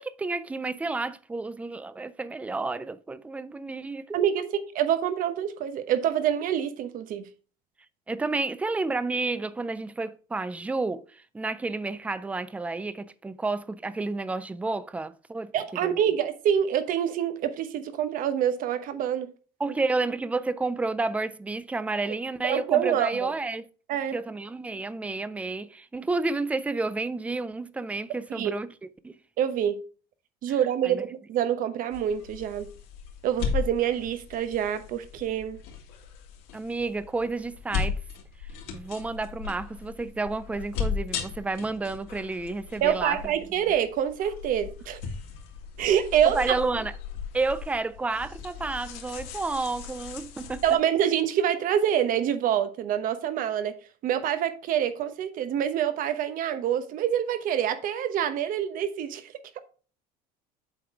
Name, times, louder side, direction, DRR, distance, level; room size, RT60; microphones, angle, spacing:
voice 1, 0.0-4.5 8.1-15.5 15.8-16.1 19.6-23.7 24.1-29.2 30.5-30.6 30.8-31.0 36.5-38.0 38.7-43.3 46.2-46.9 47.3-50.6, right 3 dB, 10° right, 0.3 m, -31 dB
voice 2, 4.7-7.3 15.5-19.3 22.4-23.3 23.9-24.2 28.4-28.5 29.4-29.8 30.4-32.7 33.2-35.6 42.8-45.0 45.8-46.5 50.6-53.7 54.0-59.3, right 9 dB, 50° right, 0.9 m, -26 dB
sound 1, 31.9-50.8, left 6 dB, 75° left, 2.1 m, -37 dB
7.7 x 3.9 x 4.6 m
cardioid pair, 135°, 18 cm